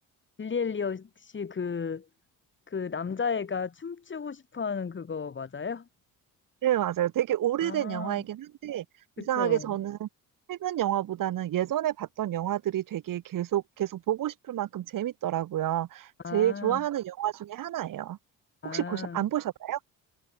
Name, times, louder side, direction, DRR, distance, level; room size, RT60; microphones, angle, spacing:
voice 1, 0.4-2.1 2.7-5.9 7.6-8.2 9.2-9.7 16.2-16.8 18.6-19.2, left 6 dB, 35° left, 4.6 m, -33 dB
voice 2, 6.6-8.8 9.2-10.1 10.5-18.2 18.6-19.8, right 12 dB, 70° right, 6.3 m, -29 dB
cardioid pair, 95°, 33 cm